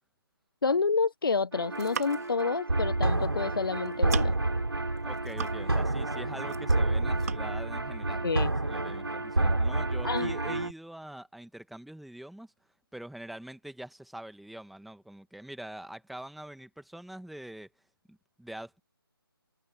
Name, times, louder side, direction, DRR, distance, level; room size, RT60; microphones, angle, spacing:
voice 1, 0.6-4.3 8.2-8.5 10.0-10.3, left 4 dB, 65° left, 0.8 m, -28 dB
sound 1, 1.5-10.7, right 2 dB, 80° right, 3.9 m, -29 dB
sound 2, 1.6-2.4 3.4-3.6 3.8-4.5 5.0-5.9 6.2-6.8 7.2-7.4, right 7 dB, 40° right, 4.1 m, -38 dB
voice 2, 5.0-12.5 12.9-17.7 18.1-18.8, right 1 dB, ahead, 1.8 m, -44 dB
figure-of-eight pair, 150°, 13 cm